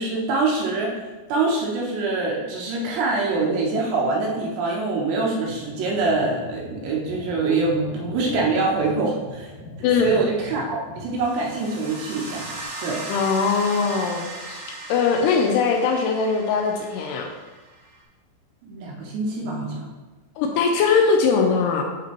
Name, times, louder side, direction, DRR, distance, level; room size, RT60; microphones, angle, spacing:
voice 1, 0.0-9.5 10.0-12.5 12.8-13.1 18.6-19.9, right 3 dB, 75° right, -2 dB, 2.9 m, -24 dB
sound 1, 5.3-12.6, left 2 dB, 60° left, 1.1 m, -41 dB
voice 2, 9.8-10.2 13.1-14.6 14.9-17.3 20.4-21.8, left 5 dB, 85° left, 3 dB, 2.4 m, -21 dB
sound 2, 11.1-18.0, right 2 dB, 40° right, 2.7 m, -37 dB
9.9 x 5.0 x 3.0 m, 1.2 s
omnidirectional pair, 5.4 m